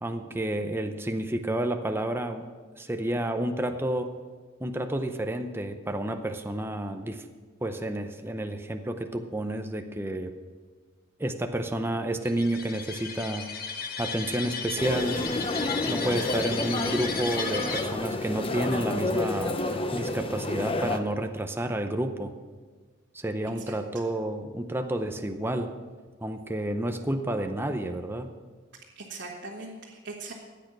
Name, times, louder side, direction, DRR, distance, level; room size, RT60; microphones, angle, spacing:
voice 1, 0.0-2.4 2.8-4.1 4.6-7.3 7.6-10.3 11.2-13.5 14.0-15.2 15.9-22.3 23.1-25.7 26.2-28.3, right 1 dB, 10° right, 6 dB, 0.6 m, -30 dB
sound 1, 12.2-17.8, left 5 dB, 50° left, 1.1 m, -35 dB
sound 2, 14.8-21.0, left 2 dB, 30° left, 0.8 m, -30 dB
voice 2, 28.9-30.3, right 3 dB, 60° right, -4 dB, 1.6 m, -40 dB
15.0 x 9.0 x 6.0 m, 1.4 s
head